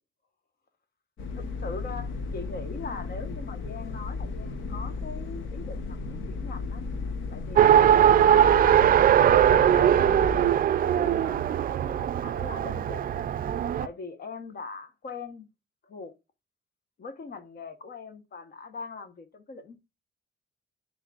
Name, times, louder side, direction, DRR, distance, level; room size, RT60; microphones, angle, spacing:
sound 1, 1.2-10.5, left 4 dB, 75° left, 1.1 m, -35 dB
voice 1, 1.3-6.8 7.3-8.8 9.4-10.3 10.8-13.2 13.8-15.5 15.8-16.1 17.0-19.8, left 4 dB, 50° left, 1.2 m, -41 dB
Race car auto racing, 7.6-13.9, right 10 dB, 45° right, 0.4 m, -20 dB
10.0 x 4.0 x 2.4 m
cardioid pair, 90°, 20 cm